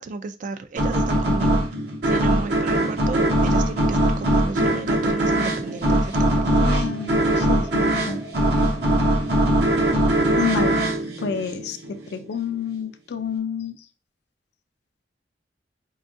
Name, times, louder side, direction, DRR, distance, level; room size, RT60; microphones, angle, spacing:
voice 1, 0.0-1.6 2.1-6.6, right 3 dB, 45° right, 0.3 m, -33 dB
sound 1, 0.8-12.0, right 1 dB, 65° right, 0.8 m, -21 dB
sound 2, 5.0-10.2, right 1 dB, 25° right, 0.7 m, -41 dB
voice 2, 6.6-8.2 10.4-10.8 11.2-13.7, left 6 dB, 65° left, 0.4 m, -29 dB
4.4 x 2.3 x 2.5 m
head